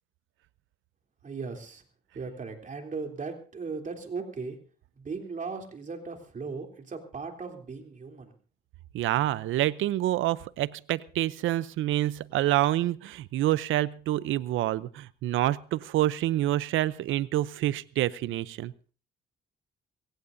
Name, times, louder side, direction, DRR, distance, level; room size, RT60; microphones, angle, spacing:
voice 1, 1.2-1.8 2.1-4.6 5.0-8.3, right 4 dB, 40° right, 3 dB, 3.3 m, -37 dB
voice 2, 8.9-18.7, right 14 dB, 80° right, 18 dB, 0.6 m, -27 dB
23.5 x 16.0 x 2.7 m, 0.40 s
cardioid pair, 90°, 20 cm